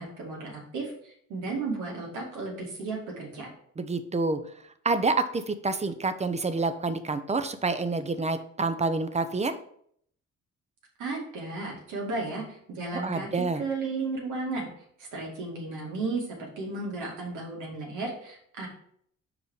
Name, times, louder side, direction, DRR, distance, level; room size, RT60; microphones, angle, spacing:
voice 1, 0.0-3.5 11.0-14.7 15.0-18.7, right 3 dB, 90° right, -2 dB, 2.3 m, -34 dB
voice 2, 3.8-4.4 4.8-9.6 12.9-13.6, right 3 dB, 20° right, 11 dB, 0.6 m, -28 dB
5.0 x 4.9 x 4.8 m, 0.65 s
cardioid pair, 90°, 30 cm